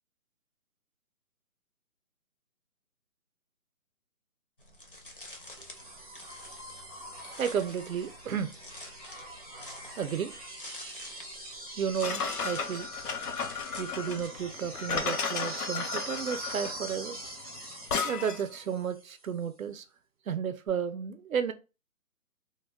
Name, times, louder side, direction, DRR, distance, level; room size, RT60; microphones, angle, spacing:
sound 1, 4.6-14.3, left 1 dB, 40° left, 0.4 m, -48 dB
sound 2, 5.2-19.2 20.7-20.8, right 1 dB, 25° right, 0.7 m, -44 dB
voice 1, 7.4-8.5 9.8-10.3 11.8-12.9 13.8-17.2 18.0-19.8 20.3-21.5, right 7 dB, 65° right, 0.5 m, -32 dB
sound 3, 12.0-18.5, left 5 dB, 90° left, 0.7 m, -34 dB
2.2 x 2.1 x 3.3 m
hypercardioid pair, 170°, 44 cm